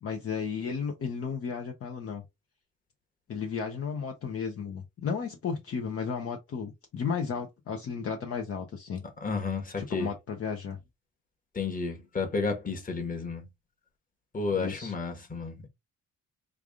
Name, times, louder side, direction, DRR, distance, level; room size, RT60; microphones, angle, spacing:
voice 1, 0.0-2.2 3.3-9.0 9.8-10.8 14.5-14.9, left 6 dB, 50° left, 0.8 m, -34 dB
voice 2, 9.2-10.1 11.5-13.5 14.3-15.7, left 4 dB, 30° left, 1.3 m, -32 dB
3.4 x 2.4 x 3.4 m
cardioid pair, 90°, 30 cm